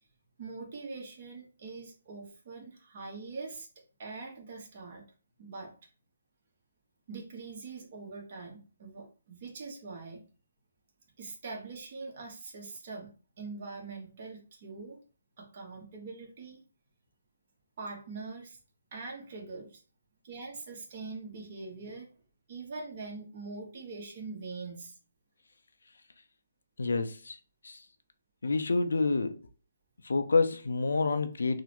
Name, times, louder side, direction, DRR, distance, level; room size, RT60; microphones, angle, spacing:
voice 1, 0.4-3.7 4.0-5.0 5.4-5.7 7.1-10.2 11.2-13.1 13.4-15.0 15.4-16.6 17.8-18.6 18.9-19.8 20.2-22.1 22.5-24.9, right 3 dB, 45° right, 1.0 m, -43 dB
voice 2, 26.8-27.4 27.6-27.8 28.4-29.4 30.0-31.6, left 3 dB, 85° left, 0.4 m, -28 dB
3.6 x 2.1 x 2.9 m
hypercardioid pair, 150°, 0 cm